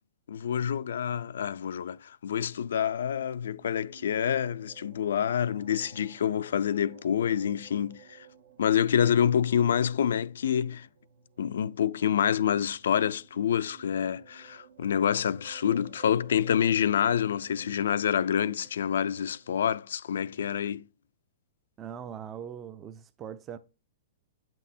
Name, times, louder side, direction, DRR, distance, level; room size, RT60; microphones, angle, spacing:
voice 1, 0.3-8.3 8.6-10.9 11.4-20.8, left 8 dB, 85° left, 0.3 m, -27 dB
sound 1, 2.4-19.7, right 9 dB, 85° right, 1.2 m, -56 dB
voice 2, 21.8-23.6, right 8 dB, 20° right, 0.4 m, -41 dB
8.4 x 6.1 x 2.6 m
hypercardioid pair, 160°, 0 cm